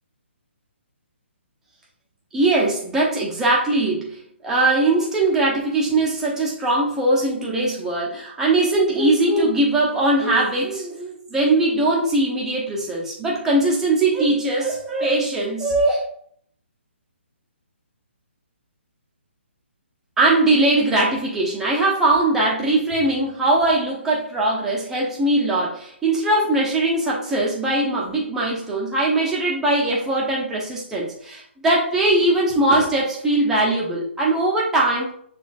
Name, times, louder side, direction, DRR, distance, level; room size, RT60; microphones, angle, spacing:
voice 1, 2.3-16.0 20.2-35.1, right 2 dB, 5° right, -4 dB, 0.9 m, -20 dB
5.9 x 3.3 x 2.5 m, 0.62 s
figure-of-eight pair, 135°, 7 cm